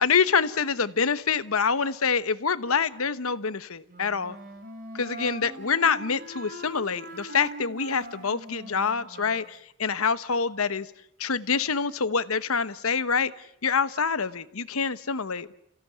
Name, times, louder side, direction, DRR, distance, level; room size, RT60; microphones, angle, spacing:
voice 1, 0.0-4.4 4.9-10.9 11.2-13.3 13.6-15.5, left 5 dB, 75° left, 14 dB, 1.1 m, -26 dB
Wind instrument woodwind instrument, 3.9-9.5, equal, 40° right, 3.2 m, -42 dB
29.5 x 16.5 x 9.2 m, 0.79 s
head